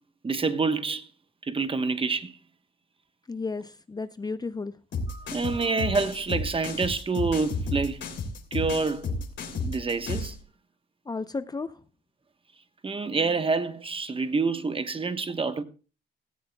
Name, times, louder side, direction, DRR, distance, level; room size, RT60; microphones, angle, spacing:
voice 1, 0.2-1.1 1.5-2.3 5.1-8.0 8.5-9.2 9.6-10.3 12.8-15.6, right 4 dB, 25° right, 1.1 m, -27 dB
voice 2, 3.3-4.7 11.1-11.7, left 4 dB, 20° left, 0.6 m, -33 dB
sound 1, 4.9-10.4, left 3 dB, 65° left, 3.0 m, -32 dB
17.5 x 14.0 x 2.2 m
cardioid pair, 90°, 20 cm